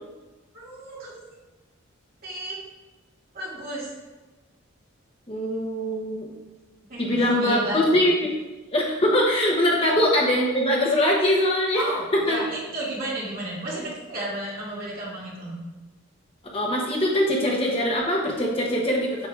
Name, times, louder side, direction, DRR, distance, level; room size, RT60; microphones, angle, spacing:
voice 1, 0.5-1.1 2.2-2.6 3.3-4.0 6.9-7.8 9.8-9.9 11.7-15.5, right 1 dB, 45° right, -6 dB, 2.2 m, -32 dB
voice 2, 5.3-6.3 7.0-8.3 8.7-11.8 12.1-12.4 16.5-19.3, left 1 dB, 25° left, -2 dB, 0.8 m, -22 dB
8.1 x 6.5 x 2.4 m, 1.2 s
head